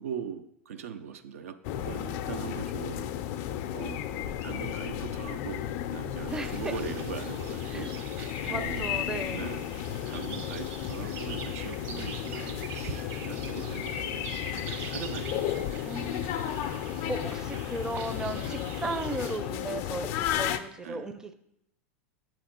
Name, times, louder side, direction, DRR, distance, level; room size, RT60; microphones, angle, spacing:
voice 1, 0.0-9.7 10.1-16.2 20.8-21.1, right 7 dB, 75° right, 9 dB, 0.4 m, -41 dB
sound 1, 1.6-20.6, left 11 dB, 50° left, 0.4 m, -34 dB
voice 2, 6.3-6.7 7.7-7.9 8.5-9.4 15.8-16.3 17.1-21.3, right 2 dB, 10° right, 9 dB, 0.4 m, -36 dB
sound 2, 6.3-19.4, right 5 dB, 50° right, 1.0 m, -44 dB
7.5 x 3.0 x 4.3 m, 0.78 s
hypercardioid pair, 100°, 8 cm